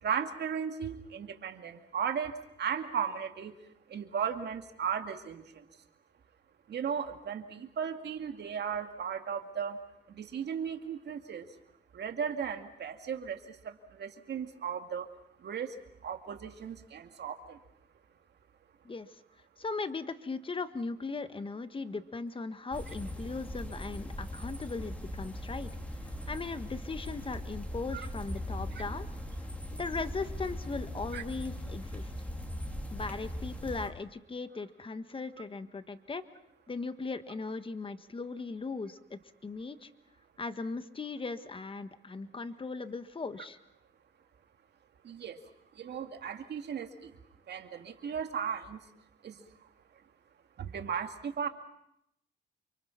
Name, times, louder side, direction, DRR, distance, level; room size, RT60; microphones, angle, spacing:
voice 1, 0.0-3.5 3.9-5.7 6.7-9.8 10.1-11.5 11.9-15.1 15.4-15.8 16.0-17.6 27.9-28.1 28.7-28.8 31.1-31.2 45.0-45.4 45.7-47.2 47.5-48.8 49.2-49.5 50.6-51.5, right 7 dB, 60° right, 6 dB, 2.3 m, -36 dB
voice 2, 19.6-25.7 26.3-29.1 29.7-32.1 32.9-36.2 36.7-39.9 40.4-43.6, left 4 dB, 25° left, 11 dB, 1.5 m, -38 dB
sound 1, 22.7-33.9, equal, 5° left, 2.9 m, -40 dB
29.5 x 24.0 x 5.9 m, 0.78 s
cardioid pair, 90°, 20 cm